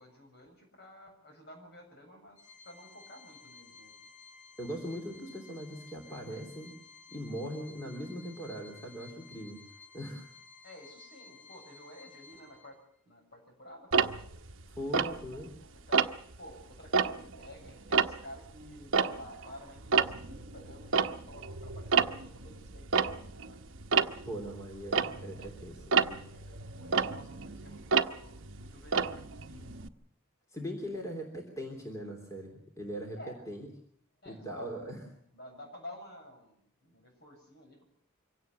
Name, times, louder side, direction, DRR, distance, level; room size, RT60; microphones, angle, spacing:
voice 1, 0.0-4.0 10.6-12.8 13.0-14.3 15.1-23.7 25.1-25.5 26.1-29.8 33.2-33.4 34.2-34.7 35.1-37.9, left 1 dB, 50° left, 3 dB, 7.1 m, -52 dB
Organ, 2.4-13.0, left 4 dB, 85° left, 3.5 m, -54 dB
voice 2, 4.6-6.8 7.1-9.6 9.9-10.2 14.8-15.6 24.3-26.3 30.5-33.7 34.2-35.0, equal, 15° left, 1 dB, 3.2 m, -40 dB
Tick-tock, 13.9-15.6 15.9-16.4 16.8-19.5 19.8-29.9, right 6 dB, 60° right, 1.0 m, -30 dB
24.5 x 17.5 x 6.8 m, 0.65 s
head